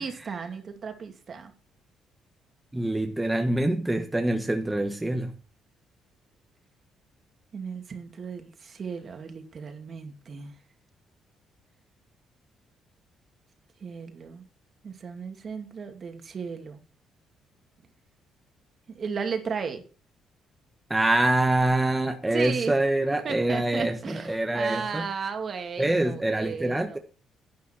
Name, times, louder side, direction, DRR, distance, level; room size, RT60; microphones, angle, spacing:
voice 1, 0.0-1.5 7.5-10.5 13.8-14.5 14.8-16.8 18.9-19.8 22.3-22.7 23.2-27.0, right 5 dB, 45° right, 2.4 m, -35 dB
voice 2, 2.7-5.4 20.9-25.1 25.8-27.0, right 1 dB, 10° right, 1.4 m, -25 dB
11.0 x 9.3 x 4.5 m
cardioid pair, 95°, 0 cm